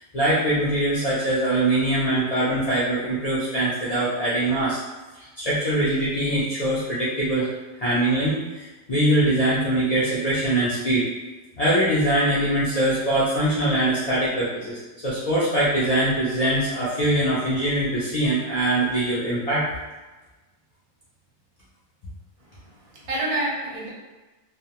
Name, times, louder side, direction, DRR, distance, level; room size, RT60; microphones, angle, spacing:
voice 1, 0.0-4.8 5.1-7.5 7.8-11.1 11.6-19.7, right 1 dB, 80° left, -10 dB, 0.3 m, -23 dB
voice 2, 22.5-23.9, right 1 dB, 45° right, -5 dB, 0.4 m, -29 dB
2.3 x 2.1 x 2.8 m, 1.2 s
omnidirectional pair, 1.4 m